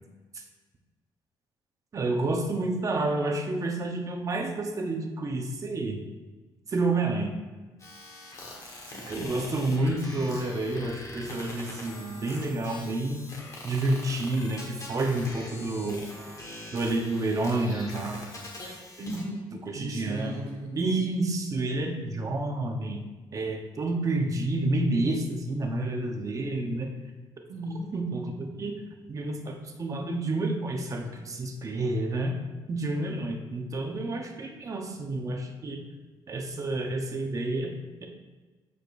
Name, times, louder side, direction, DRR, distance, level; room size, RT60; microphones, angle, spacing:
voice 1, 1.9-6.0 6.7-7.4 9.1-13.3 13.6-16.0 16.7-18.3 18.7-18.8 19.7-20.4 20.8-23.0 23.3-26.9 27.9-28.8 29.1-32.3 32.7-35.8 36.3-38.1, right 2 dB, 35° right, 3 dB, 0.9 m, -29 dB
sound 1, 7.8-19.2, left 1 dB, 35° left, 1.4 m, -43 dB
voice 2, 8.9-9.4 19.0-19.5 19.7-20.9 27.5-27.9, right 1 dB, 85° right, -2 dB, 1.4 m, -36 dB
8.2 x 5.0 x 2.6 m, 1.3 s
cardioid pair, 105°, 9 cm